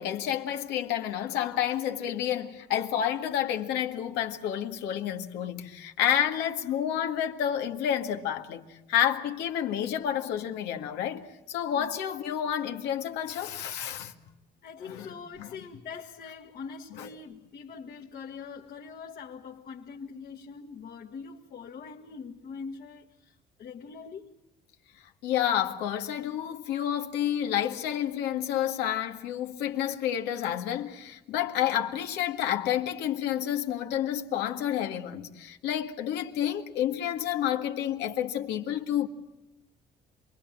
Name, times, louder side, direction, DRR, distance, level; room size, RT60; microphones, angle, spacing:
voice 1, 0.0-14.1 14.9-15.1 15.4-15.5 17.0-17.1 25.2-39.1, left 10 dB, 90° left, 1.9 m, -29 dB
voice 2, 14.6-24.3, left 5 dB, 60° left, 1.9 m, -43 dB
27.5 x 21.0 x 7.5 m
cardioid pair, 110°, 17 cm